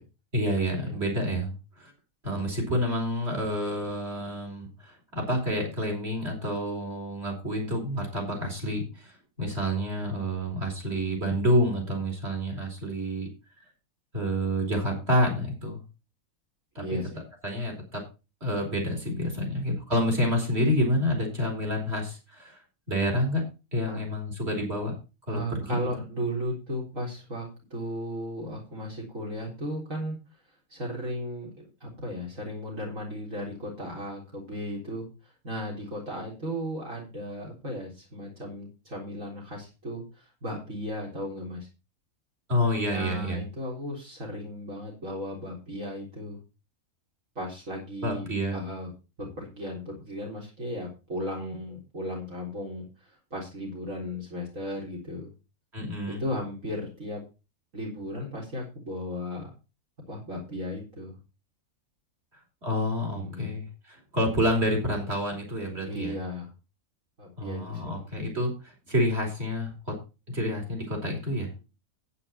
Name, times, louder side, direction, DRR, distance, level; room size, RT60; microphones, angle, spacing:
voice 1, 0.3-1.9 2.2-13.3 14.1-15.8 16.7-17.0 17.4-18.0 18.4-22.6 22.9-23.4 23.7-24.9 25.3-25.8 42.5-43.4 48.0-48.6 55.7-56.2 62.6-66.2 67.4-69.7 70.3-71.5, equal, 45° right, 1 dB, 4.9 m, -28 dB
voice 2, 16.8-17.2 23.9-24.0 25.3-30.2 30.7-31.5 31.8-41.7 42.9-46.4 47.4-48.9 49.2-55.3 56.1-57.2 57.7-59.5 60.1-61.1 63.1-63.5 65.8-66.5 67.2-68.1, equal, 60° right, -2 dB, 4.3 m, -35 dB
11.0 x 9.4 x 4.3 m, 0.30 s
omnidirectional pair, 1.5 m